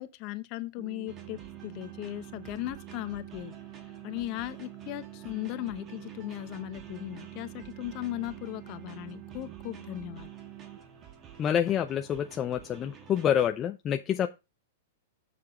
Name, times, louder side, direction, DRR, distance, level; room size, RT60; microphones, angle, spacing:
voice 1, 0.0-3.5 4.0-10.3, left 16 dB, 40° left, 0.9 m, -37 dB
sound 1, 0.8-10.8, right 16 dB, 45° right, 1.2 m, -47 dB
sound 2, 1.1-13.5, right 7 dB, 30° right, 1.6 m, -51 dB
voice 2, 11.4-14.3, left 9 dB, 25° left, 0.5 m, -27 dB
6.9 x 6.7 x 3.8 m
hypercardioid pair, 135°, 0 cm